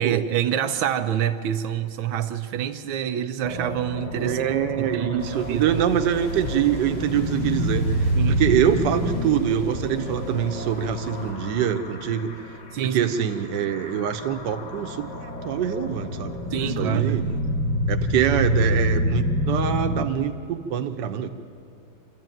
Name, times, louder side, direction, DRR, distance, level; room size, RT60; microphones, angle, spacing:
voice 1, 0.0-4.4 4.8-5.7 8.2-8.4 12.7-13.1 16.5-17.2, right 10 dB, 85° right, 7 dB, 1.5 m, -26 dB
sound 1, 3.4-12.9 13.1-20.1, equal, 25° left, 1.0 m, -28 dB
voice 2, 4.1-12.3 12.8-16.4 16.8-17.4 17.9-21.3, right 9 dB, 65° right, 6 dB, 1.5 m, -25 dB
sound 2, 5.2-11.3, left 1 dB, 65° left, 3.7 m, -38 dB
26.5 x 13.0 x 9.1 m, 2.5 s
omnidirectional pair, 2.1 m